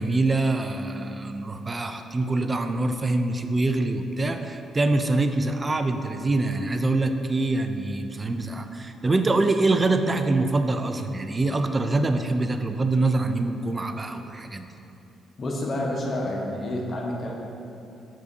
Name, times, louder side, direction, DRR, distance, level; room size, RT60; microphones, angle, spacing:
voice 1, 0.0-14.7, right 2 dB, 25° right, 7 dB, 0.4 m, -24 dB
voice 2, 15.4-17.3, left 1 dB, 45° left, -1 dB, 1.1 m, -29 dB
7.3 x 6.5 x 2.7 m, 2.9 s
cardioid pair, 90°, 0 cm